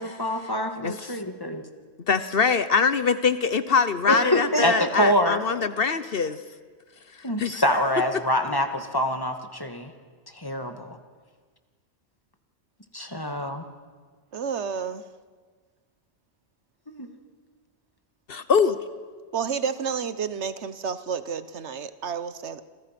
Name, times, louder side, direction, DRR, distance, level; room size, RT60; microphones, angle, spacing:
voice 1, 0.0-1.6 4.1-5.6 7.2-9.9 10.3-11.0 12.9-13.6 16.9-17.1, equal, 20° left, 6 dB, 1.9 m, -25 dB
voice 2, 2.1-6.4 7.4-7.6 18.3-18.8, left 5 dB, 55° left, 13 dB, 1.1 m, -23 dB
voice 3, 14.3-15.0 19.3-22.6, right 6 dB, 75° right, 13 dB, 1.3 m, -30 dB
28.5 x 26.5 x 6.0 m, 1.5 s
omnidirectional pair, 1.2 m